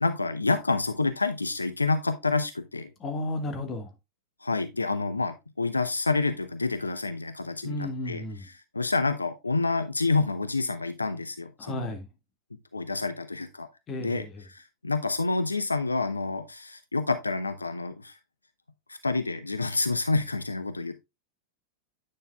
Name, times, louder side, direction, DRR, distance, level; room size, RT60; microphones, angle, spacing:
voice 1, 0.0-2.9 4.4-8.2 8.7-11.9 12.7-13.7 14.0-14.2 14.5-18.2 18.9-21.0, left 3 dB, 80° left, 0.6 m, -28 dB
voice 2, 3.0-3.9 7.6-8.5 11.6-12.1 13.9-14.4, left 1 dB, 25° left, 1.7 m, -33 dB
9.3 x 6.4 x 2.3 m
figure-of-eight pair, 90°, 0 cm